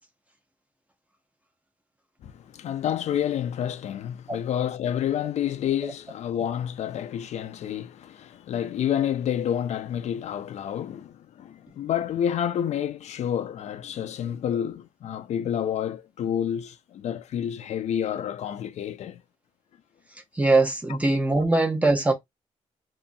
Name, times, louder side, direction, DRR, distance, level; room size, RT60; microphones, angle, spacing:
voice 1, 2.2-19.2 20.9-21.0, left 9 dB, 65° left, 0.4 m, -29 dB
voice 2, 20.4-22.1, right 2 dB, 10° right, 0.7 m, -21 dB
3.0 x 2.5 x 2.6 m
cardioid pair, 135°, 12 cm